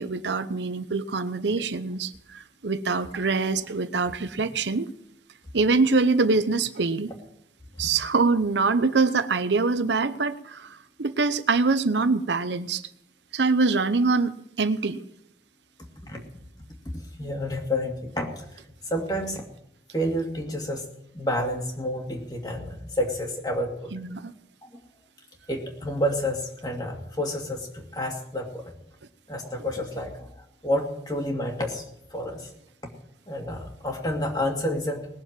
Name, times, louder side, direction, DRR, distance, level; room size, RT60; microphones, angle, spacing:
voice 1, 0.0-4.9 5.5-7.1 7.8-12.8 13.3-15.0 23.9-24.3, right 4 dB, 85° right, 12 dB, 0.8 m, -24 dB
voice 2, 16.9-18.4 18.9-19.4 19.9-20.8 21.1-23.9 25.5-28.7 29.3-30.3 30.6-31.8 32.1-32.5 33.3-35.1, left 1 dB, 20° left, 1 dB, 2.5 m, -29 dB
20.0 x 7.3 x 7.5 m, 0.78 s
head